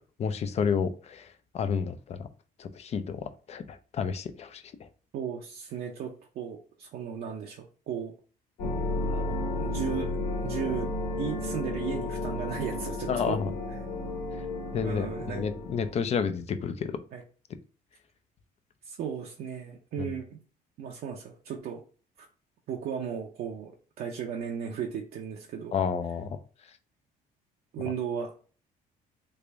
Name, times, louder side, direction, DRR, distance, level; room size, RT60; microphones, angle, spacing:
voice 1, 0.2-2.3 2.6-4.9 13.1-13.5 14.7-17.0 25.7-26.4, left 6 dB, 40° left, 10 dB, 0.4 m, -30 dB
voice 2, 5.1-8.1 9.1-10.2 10.4-10.9 11.2-13.4 14.8-15.4 17.1-17.2 18.8-20.4 20.8-21.8 22.2-22.3 22.7-23.7 24.0-25.7 27.7-28.4, right 7 dB, 65° right, -1 dB, 0.6 m, -35 dB
sound 1, 8.6-15.9, left 2 dB, 90° left, 1.7 m, -32 dB
3.3 x 2.5 x 3.3 m, 0.39 s
cardioid pair, 110°, 17 cm